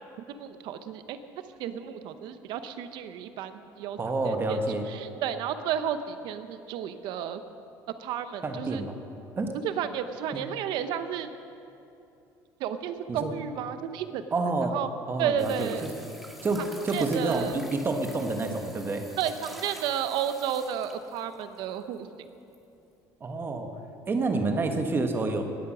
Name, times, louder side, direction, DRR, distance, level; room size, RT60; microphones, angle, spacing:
voice 1, 0.3-1.2 1.6-4.0 4.2-4.6 4.9-7.4 8.0-8.8 9.6-11.3 12.6-14.2 14.7-14.9 15.2-15.9 16.6-17.6 19.2-22.1, right 9 dB, 70° right, 10 dB, 0.9 m, -32 dB
voice 2, 4.0-4.8 8.4-9.0 9.4-9.5 10.3-10.4 13.1-13.3 14.3-14.8 15.1-15.9 16.4-19.1 23.2-23.7 24.1-25.4, right 3 dB, 30° right, 5 dB, 1.5 m, -28 dB
sound 1, 15.4-21.6 22.5-22.6, equal, ahead, 1.9 m, -47 dB
20.0 x 8.4 x 6.2 m, 2.8 s
cardioid pair, 110°, 8 cm